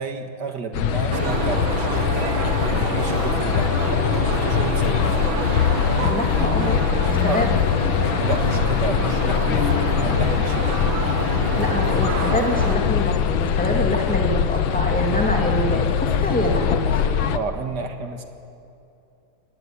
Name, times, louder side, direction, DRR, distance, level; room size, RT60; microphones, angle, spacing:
voice 1, 0.0-2.3 2.6-3.9 4.3-5.4 7.3-7.4 8.2-10.8 17.3-18.2, right 4 dB, 60° right, 5 dB, 2.2 m, -31 dB
sound 1, 0.7-17.4, left 8 dB, 80° left, 1.7 m, -22 dB
sound 2, 1.1-12.8, right 4 dB, 85° right, 2.5 m, -28 dB
voice 2, 6.0-6.8 7.1-7.5 11.6-17.3, equal, 5° left, 0 dB, 2.6 m, -25 dB
24.5 x 18.5 x 9.8 m, 2.7 s
omnidirectional pair, 2.1 m